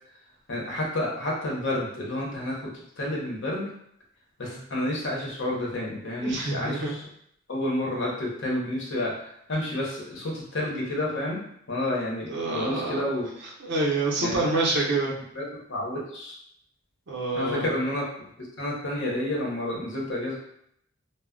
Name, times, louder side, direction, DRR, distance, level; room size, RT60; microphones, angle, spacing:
voice 1, 0.5-2.6 3.0-3.6 4.4-7.0 7.5-11.4 11.7-13.3 14.2-14.4 15.3-16.3 17.3-18.0 18.6-20.4, left 1 dB, 65° left, -3 dB, 0.8 m, -30 dB
voice 2, 6.2-7.0 12.3-13.0 13.6-15.1 17.1-17.7, right 2 dB, 60° right, -2 dB, 0.7 m, -27 dB
2.2 x 2.1 x 3.6 m, 0.72 s
head